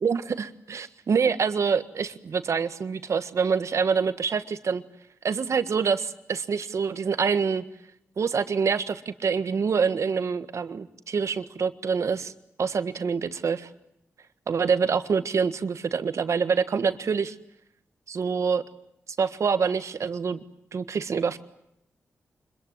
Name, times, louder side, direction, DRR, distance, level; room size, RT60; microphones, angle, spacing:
voice 1, 0.0-4.8 5.2-7.6 8.2-12.3 12.6-13.7 14.5-17.3 18.1-18.6 19.2-20.4 20.7-21.4, right 5 dB, 65° right, 11 dB, 1.6 m, -26 dB
25.5 x 22.0 x 9.5 m, 0.78 s
cardioid pair, 55°, 5 cm